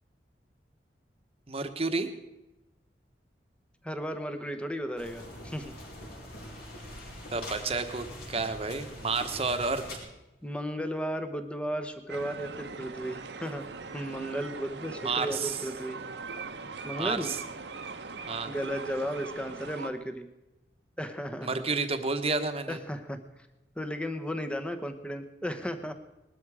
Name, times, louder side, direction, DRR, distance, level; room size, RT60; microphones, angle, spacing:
voice 1, 1.5-2.1 7.3-9.8 15.0-15.5 17.0-17.4 18.3-18.5 21.4-22.8, right 4 dB, 35° right, 8 dB, 1.2 m, -30 dB
voice 2, 3.8-5.8 10.4-16.0 16.8-17.3 18.5-20.3 21.0-21.6 22.7-23.2 23.8-25.9, equal, 5° left, 8 dB, 1.0 m, -35 dB
sound 1, 5.0-10.0, left 1 dB, 60° left, 4.9 m, -43 dB
sound 2, 12.1-19.9, right 4 dB, 75° right, 1.0 m, -41 dB
20.0 x 12.5 x 4.9 m, 0.96 s
head